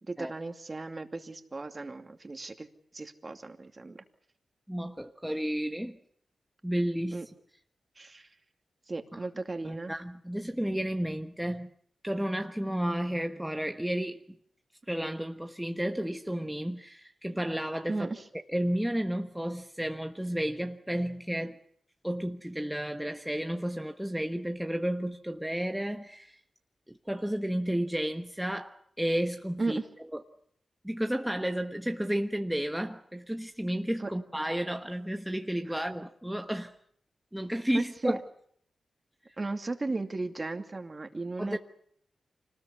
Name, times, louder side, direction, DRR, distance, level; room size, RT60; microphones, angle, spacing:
voice 1, 0.0-2.7 2.9-4.0 7.1-7.3 8.0-8.3 8.9-9.9 17.9-18.2 29.6-29.9 34.0-34.1 35.7-35.8 37.7-38.2 39.4-41.6, right 3 dB, 35° right, 2.7 m, -35 dB
voice 2, 4.7-6.0 6.6-7.2 9.6-11.7 12.0-14.2 14.9-18.1 18.5-21.6 22.0-26.4 26.9-29.8 30.1-30.2 30.8-36.7 37.3-38.2 41.4-41.6, equal, 5° right, 1.3 m, -32 dB
25.5 x 19.5 x 8.4 m
cardioid pair, 70°, 0 cm